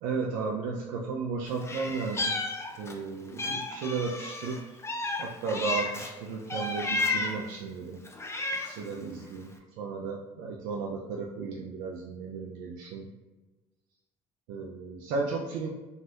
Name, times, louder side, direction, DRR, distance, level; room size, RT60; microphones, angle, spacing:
voice 1, 0.0-2.3 2.8-4.6 5.2-8.0 8.6-9.5 9.8-13.1 14.5-15.7, right 4 dB, 85° right, -1 dB, 0.4 m, -34 dB
Meow, 1.6-3.0 3.4-6.1 6.5-7.5 8.0-8.9, left 3 dB, 20° left, 0.5 m, -32 dB
3.1 x 2.4 x 2.7 m, 1.2 s
supercardioid pair, 70°, 14 cm